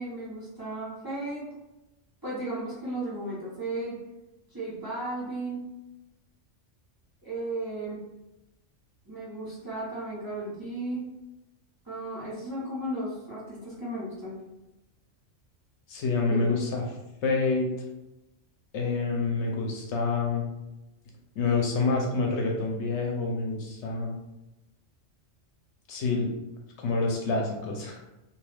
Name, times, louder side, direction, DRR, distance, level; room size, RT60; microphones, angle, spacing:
voice 1, 0.0-1.5 2.2-4.0 4.5-5.6 7.2-8.0 9.1-11.0 11.8-14.4 16.3-16.4, right 1 dB, 20° right, -9 dB, 0.8 m, -35 dB
voice 2, 15.9-16.8 17.2-17.7 18.7-20.5 21.4-24.2 25.9-26.3 26.8-28.0, left 3 dB, 75° left, 0 dB, 0.9 m, -27 dB
2.6 x 2.3 x 3.2 m, 0.98 s
omnidirectional pair, 1.2 m